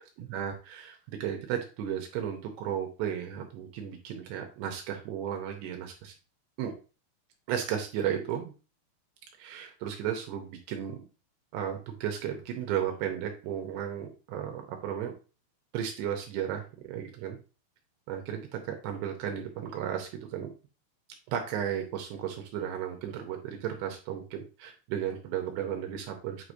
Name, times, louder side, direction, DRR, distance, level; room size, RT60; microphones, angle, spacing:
voice 1, 0.2-6.1 6.6-6.7 7.5-8.5 9.4-11.0 11.5-15.1 15.7-17.4 18.1-20.5 21.3-26.5, right 9 dB, 80° right, 4 dB, 2.7 m, -34 dB
8.4 x 4.8 x 2.6 m, 0.34 s
omnidirectional pair, 5.4 m